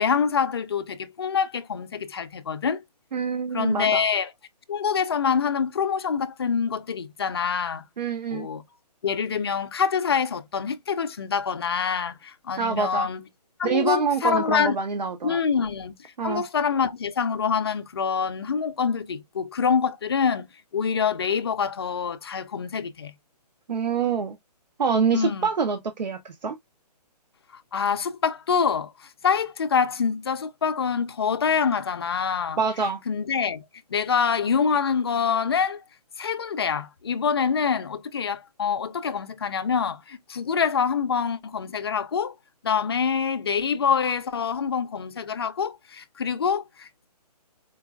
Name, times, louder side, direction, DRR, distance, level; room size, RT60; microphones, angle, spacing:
voice 1, 0.0-2.8 3.5-4.3 4.7-7.8 8.3-8.6 9.0-13.2 13.6-14.8 15.2-20.5 20.7-23.1 25.1-25.5 27.5-32.6 33.1-33.6 33.9-35.8 36.2-42.3 42.6-47.1, left 6 dB, 40° left, 0.4 m, -25 dB
voice 2, 3.1-4.0 8.0-8.5 12.6-13.1 13.6-15.4 16.2-16.4 23.7-24.4 24.8-26.5 32.6-33.0, right 6 dB, 90° right, 0.7 m, -26 dB
4.4 x 2.3 x 2.2 m
hypercardioid pair, 170°, 21 cm